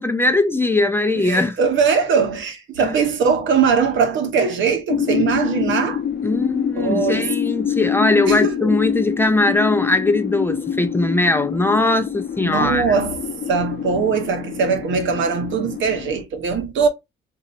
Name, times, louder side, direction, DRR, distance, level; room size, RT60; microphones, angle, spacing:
voice 1, 0.0-1.6 2.8-2.9 6.2-12.9, left 2 dB, 10° left, 0.6 m, -20 dB
voice 2, 1.2-6.0 6.8-7.3 8.2-8.7 12.4-13.2 13.5-16.9, right 5 dB, 75° right, 0.9 m, -20 dB
sound 1, 4.9-16.2, left 8 dB, 60° left, 0.8 m, -26 dB
2.8 x 2.5 x 4.0 m
cardioid pair, 90°, 20 cm